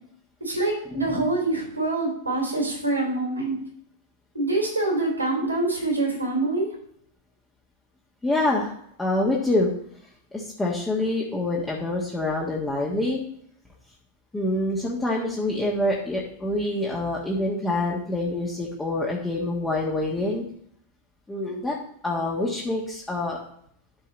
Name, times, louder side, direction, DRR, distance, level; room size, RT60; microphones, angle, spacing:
voice 1, 0.4-3.5 4.3-6.7, right 2 dB, 80° right, 0 dB, 3.5 m, -25 dB
voice 2, 8.2-8.7 9.0-9.7 10.3-13.2 14.3-20.4 21.3-21.8 22.0-23.4, left 2 dB, 10° left, -3 dB, 1.6 m, -26 dB
12.5 x 4.6 x 4.2 m, 0.68 s
figure-of-eight pair, 90°, 0 cm